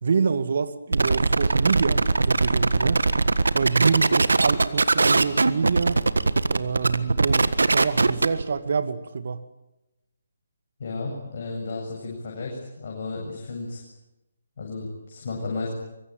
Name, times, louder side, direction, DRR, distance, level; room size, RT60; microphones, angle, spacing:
voice 1, 0.0-3.0 3.5-6.0 6.5-7.5 7.7-9.4, right 5 dB, 55° right, 11 dB, 2.1 m, -26 dB
sound 1, 0.9-8.4, right 3 dB, 75° right, 1.5 m, -21 dB
voice 2, 10.8-13.8 14.6-15.7, left 3 dB, 50° left, -1 dB, 7.8 m, -33 dB
24.5 x 23.5 x 9.1 m, 0.95 s
figure-of-eight pair, 145°, 0 cm